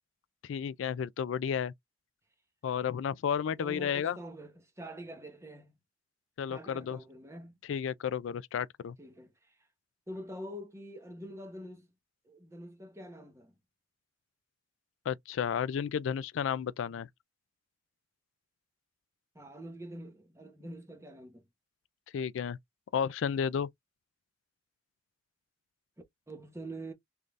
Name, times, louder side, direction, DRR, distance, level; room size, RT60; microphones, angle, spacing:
voice 1, 0.4-1.7 2.6-4.2 6.4-7.0 7.7-9.0 15.1-17.1 22.1-22.6 22.9-23.7, left 7 dB, 80° left, 0.3 m, -32 dB
voice 2, 3.6-5.7 6.5-7.6 9.0-9.3 10.1-11.9 12.3-13.5 19.3-21.5 26.3-26.9, right 1 dB, 15° right, 0.9 m, -45 dB
3.9 x 3.3 x 2.5 m
head